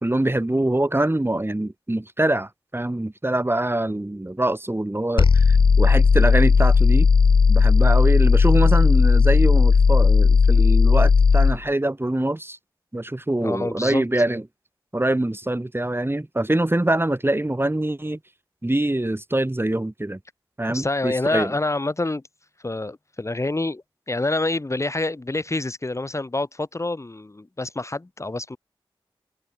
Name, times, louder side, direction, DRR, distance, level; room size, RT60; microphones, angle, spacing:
voice 1, 0.0-7.1 7.5-12.6 12.9-14.4 14.9-18.2 18.6-20.2 20.6-21.5, right 1 dB, 25° right, 2.4 m, -24 dB
sound 1, 5.2-11.6, left 5 dB, 60° left, 0.5 m, -15 dB
voice 2, 13.4-14.1 20.7-22.2 22.6-28.6, left 2 dB, 30° left, 1.0 m, -27 dB
cardioid pair, 40°, 10 cm